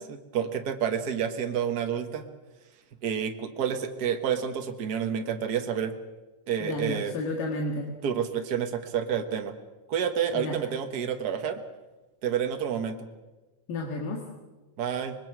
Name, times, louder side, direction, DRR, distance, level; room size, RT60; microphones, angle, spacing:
voice 1, 0.0-2.3 3.0-5.9 6.5-7.1 8.0-9.5 9.9-11.6 12.2-13.1 14.8-15.2, right 8 dB, 50° right, 6 dB, 1.2 m, -29 dB
voice 2, 6.6-7.9 10.4-10.6 13.7-14.2, left 2 dB, 90° left, 1 dB, 3.5 m, -31 dB
25.0 x 21.0 x 6.2 m, 1.2 s
omnidirectional pair, 3.8 m